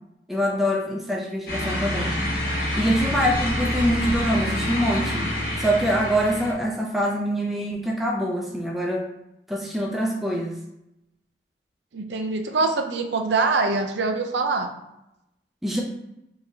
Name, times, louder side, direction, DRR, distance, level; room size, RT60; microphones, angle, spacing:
voice 1, 0.3-2.2 2.8-5.3 5.6-9.1 9.5-10.6 15.6-15.8, equal, ahead, -2 dB, 0.5 m, -24 dB
sound 1, 1.5-6.5, left 1 dB, 55° left, 1.1 m, -27 dB
voice 2, 11.9-14.7, right 3 dB, 80° right, 5 dB, 0.5 m, -24 dB
4.6 x 2.9 x 2.7 m, 0.85 s
head